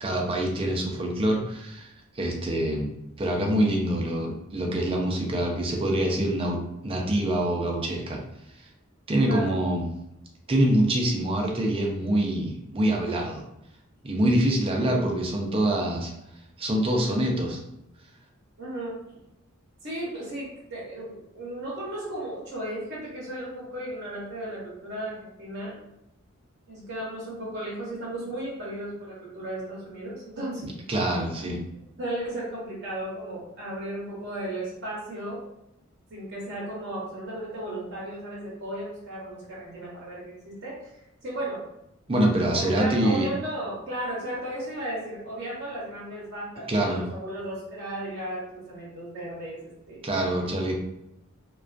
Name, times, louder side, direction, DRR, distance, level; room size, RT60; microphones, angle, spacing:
voice 1, 0.0-2.9 3.2-8.2 9.1-9.9 10.5-13.4 14.0-16.1 16.6-17.6 30.9-31.6 42.1-43.3 46.7-47.0 50.0-50.7, right 1 dB, 25° right, 0 dB, 0.4 m, -25 dB
voice 2, 9.2-9.6 18.6-19.0 19.8-25.8 26.7-30.7 32.0-35.5 36.1-40.8 41.2-41.6 42.5-50.1, right 1 dB, 55° right, -6 dB, 0.7 m, -35 dB
2.3 x 2.2 x 2.4 m, 0.85 s
head